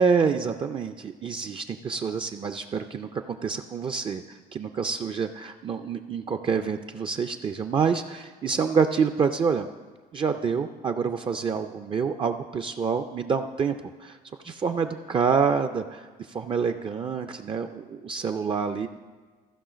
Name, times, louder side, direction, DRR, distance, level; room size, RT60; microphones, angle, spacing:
voice 1, 0.0-9.7 10.1-14.2 14.4-18.9, right 6 dB, 30° right, 6 dB, 0.4 m, -27 dB
14.5 x 5.6 x 5.0 m, 1.4 s
cardioid pair, 110°, 17 cm